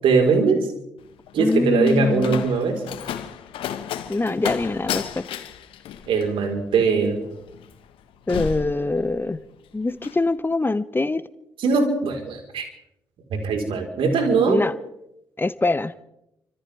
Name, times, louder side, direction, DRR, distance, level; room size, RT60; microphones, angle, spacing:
voice 1, 0.0-0.7 1.3-2.8 6.1-7.2 11.6-12.6 13.3-14.6, right 4 dB, 65° right, 3 dB, 4.6 m, -21 dB
Slam, 1.0-9.5 9.8-10.2, left 9 dB, 70° left, 1.5 m, -34 dB
voice 2, 1.4-2.5 4.1-5.3 8.3-9.4 9.7-11.2 14.5-14.7 15.4-15.9, left 2 dB, 20° left, 15 dB, 1.1 m, -23 dB
30.0 x 26.0 x 3.6 m, 0.84 s
hypercardioid pair, 40°, 10 cm